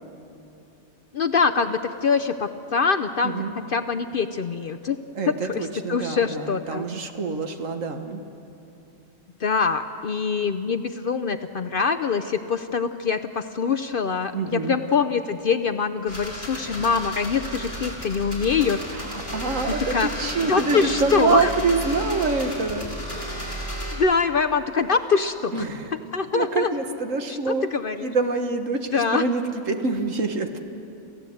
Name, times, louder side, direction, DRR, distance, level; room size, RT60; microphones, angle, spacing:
voice 1, 1.1-3.3 3.7-5.0 5.3-6.9 9.4-18.8 19.9-20.1 20.4-21.5 23.9-25.7 25.9-26.7 27.3-28.1 28.9-29.2, left 5 dB, 55° left, 8 dB, 0.7 m, -24 dB
voice 2, 3.2-3.5 5.2-8.2 14.3-14.8 18.9-22.9 25.5-25.9 26.3-27.7 28.0-30.6, right 4 dB, 70° right, 6 dB, 1.7 m, -26 dB
sound 1, 16.1-24.0, right 1 dB, 15° left, 4.9 m, -33 dB
28.0 x 15.5 x 7.8 m, 2.8 s
omnidirectional pair, 1.4 m